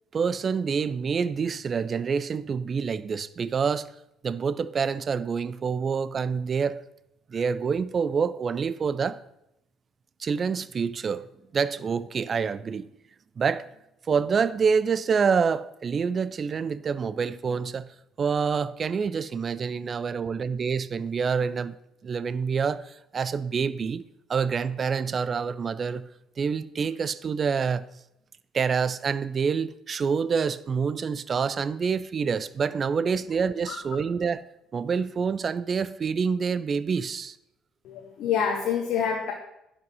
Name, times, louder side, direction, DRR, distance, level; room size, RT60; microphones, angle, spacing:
voice 1, 0.1-3.9 4.2-6.8 7.3-9.2 10.2-12.9 13.4-13.7 14.1-21.7 22.0-24.0 24.3-26.0 26.4-27.8 28.5-34.4 34.7-37.4, right 6 dB, 40° right, 17 dB, 0.5 m, -27 dB
voice 2, 37.8-39.3, left 7 dB, 55° left, 2 dB, 1.2 m, -27 dB
10.5 x 5.1 x 6.1 m, 0.83 s
figure-of-eight pair, 50°, 0 cm